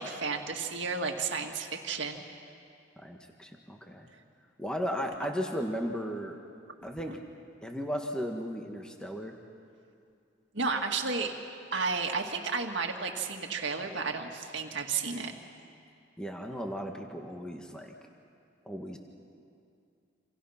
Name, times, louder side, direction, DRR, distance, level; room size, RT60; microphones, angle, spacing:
voice 1, 0.0-2.2 7.1-7.2 10.5-11.3 11.7-15.3, right 4 dB, 65° right, 3 dB, 2.0 m, -32 dB
voice 2, 3.0-4.1 4.6-6.4 6.8-7.1 7.6-9.4 16.2-17.9 18.6-19.0, equal, 5° left, 2 dB, 1.4 m, -35 dB
28.0 x 27.0 x 5.8 m, 2.4 s
head